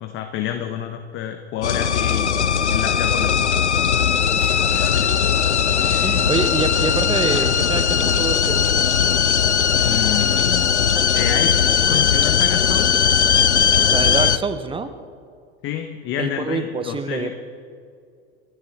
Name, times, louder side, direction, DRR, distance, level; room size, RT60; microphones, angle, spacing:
voice 1, 0.0-3.6 4.6-5.1 9.8-11.6 11.9-13.0 15.6-17.3, left 10 dB, 35° left, 7 dB, 1.1 m, -29 dB
sound 1, 1.6-14.4, left 7 dB, 85° left, 0.6 m, -18 dB
voice 2, 4.4-4.7 6.0-8.8 13.9-14.9 16.2-17.3, right 4 dB, 15° right, 10 dB, 1.1 m, -26 dB
28.0 x 12.5 x 3.7 m, 2.3 s
figure-of-eight pair, 80°, 33 cm